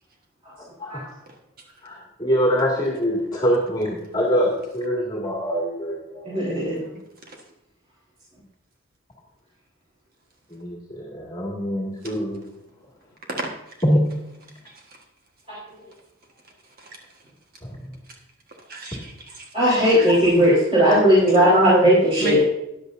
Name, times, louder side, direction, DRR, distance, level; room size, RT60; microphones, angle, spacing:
voice 1, 1.8-6.3 10.5-12.4 13.8-14.0 17.6-17.8, equal, 20° left, -3 dB, 2.1 m, -24 dB
voice 2, 6.3-6.8 15.5-15.6 19.5-22.4, equal, 25° right, -11 dB, 4.1 m, -17 dB
voice 3, 13.4-13.8 14.7-14.8 16.8-17.0 18.7-19.5 20.0-20.1 21.3-21.4 22.2-22.4, right 1 dB, 45° right, 1 dB, 1.5 m, -33 dB
14.0 x 10.0 x 2.7 m, 0.85 s
head